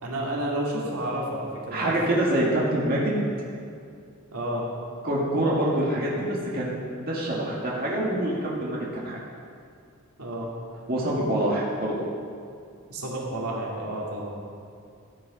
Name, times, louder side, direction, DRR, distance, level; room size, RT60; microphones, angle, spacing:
voice 1, 0.0-2.0 4.3-4.6 10.2-10.5 12.9-14.3, right 1 dB, 85° right, -3 dB, 2.4 m, -30 dB
voice 2, 1.7-3.2 5.0-6.7 7.0-9.2 10.9-11.9, right 1 dB, 40° right, -5 dB, 2.0 m, -25 dB
14.0 x 8.8 x 5.0 m, 2.3 s
head